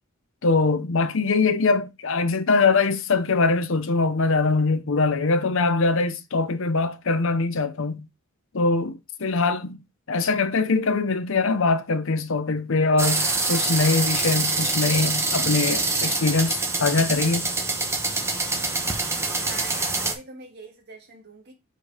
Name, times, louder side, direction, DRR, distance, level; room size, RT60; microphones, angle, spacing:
voice 1, 0.4-8.1 8.5-9.8 10.1-17.5, left 3 dB, 65° left, 0.7 m, -22 dB
sound 1, 13.0-20.1, right 3 dB, 15° right, 1.1 m, -25 dB
voice 2, 19.4-21.5, right 2 dB, 50° right, 2.1 m, -43 dB
5.2 x 4.5 x 4.9 m
head